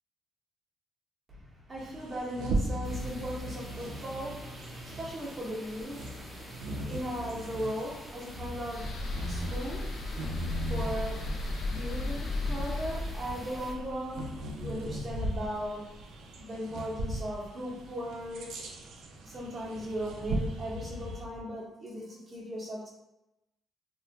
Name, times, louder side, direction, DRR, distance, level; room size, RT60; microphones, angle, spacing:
voice 1, 1.3-4.6 4.8-6.2 6.8-11.3 11.7-14.3 14.6-15.9 16.4-18.5 19.2-22.9, equal, 30° right, -8 dB, 1.0 m, -38 dB
Bird vocalization bird call bird song, 1.8-21.2, right 1 dB, 80° right, 0.4 m, -39 dB
sound 1, 2.8-13.7, equal, ahead, 0.7 m, -48 dB
sound 2, 8.7-15.9, left 2 dB, 65° left, 0.3 m, -36 dB
3.0 x 2.1 x 2.7 m, 0.92 s
cardioid pair, 90°, 0 cm